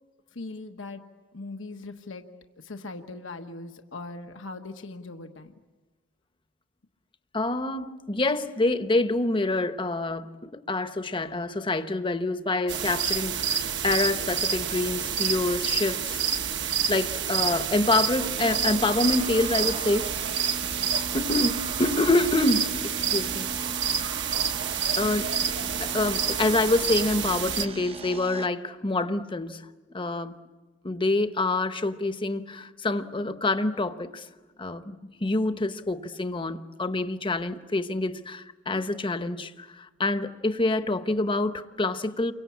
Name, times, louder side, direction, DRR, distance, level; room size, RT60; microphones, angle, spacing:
voice 1, 0.3-1.0 1.3-2.3 2.6-5.5, left 3 dB, 75° left, 1.2 m, -40 dB
voice 2, 7.3-16.2 16.9-20.1 21.1-23.5 25.0-25.3 25.8-29.6 29.9-30.3 30.8-34.2 34.6-34.9 35.2-42.3, left 2 dB, 25° left, 1.0 m, -26 dB
sound 1, 12.7-27.7, right 7 dB, 65° right, 1.2 m, -28 dB
sound 2, 18.3-28.5, right 3 dB, 30° right, 0.8 m, -40 dB
29.5 x 23.5 x 8.5 m
head